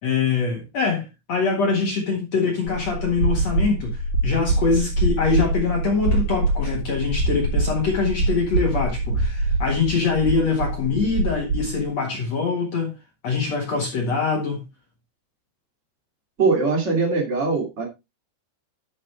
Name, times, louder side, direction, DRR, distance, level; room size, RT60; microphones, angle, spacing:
voice 1, 0.0-12.9 13.2-14.6, left 4 dB, 55° left, 2.0 m, -23 dB
sound 1, 2.7-11.8, right 2 dB, 35° right, 3.6 m, -24 dB
voice 2, 16.4-17.8, right 4 dB, 65° right, 0.7 m, -21 dB
11.5 x 6.5 x 3.3 m
omnidirectional pair, 5.4 m